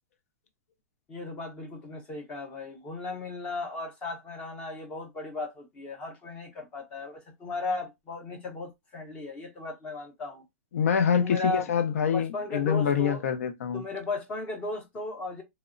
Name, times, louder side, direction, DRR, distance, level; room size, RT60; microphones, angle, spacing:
voice 1, 1.1-10.4 11.2-11.7 12.1-13.2 13.7-15.4, left 3 dB, 15° left, 0.5 m, -36 dB
voice 2, 10.7-13.8, left 7 dB, 75° left, 0.4 m, -25 dB
2.9 x 2.0 x 2.4 m
supercardioid pair, 175°, 8 cm